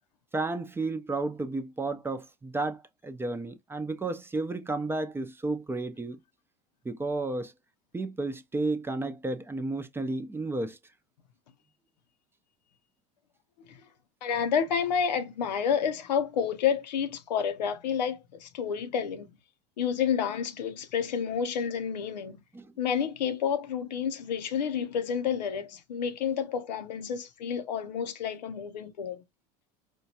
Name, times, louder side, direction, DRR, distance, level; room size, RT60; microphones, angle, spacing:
voice 1, 0.3-6.2 6.8-7.5 7.9-10.8 22.5-22.7, right 2 dB, 10° right, 0.6 m, -32 dB
voice 2, 14.2-19.3 19.8-22.4 22.8-29.2, left 7 dB, 90° left, 0.7 m, -30 dB
4.4 x 2.3 x 2.7 m
hypercardioid pair, 100°, 21 cm